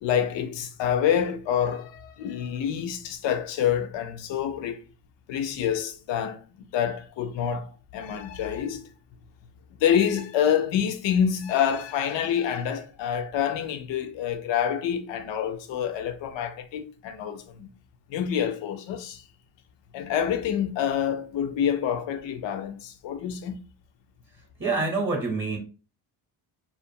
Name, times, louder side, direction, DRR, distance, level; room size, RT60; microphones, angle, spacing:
voice 1, 0.0-4.8 5.3-6.4 6.7-8.8 9.8-17.7 18.1-19.2 19.9-23.6, left 9 dB, 75° left, 0.6 m, -27 dB
voice 2, 24.6-25.6, right 3 dB, 25° right, 0.8 m, -26 dB
2.5 x 2.5 x 2.6 m
cardioid pair, 80°, 45 cm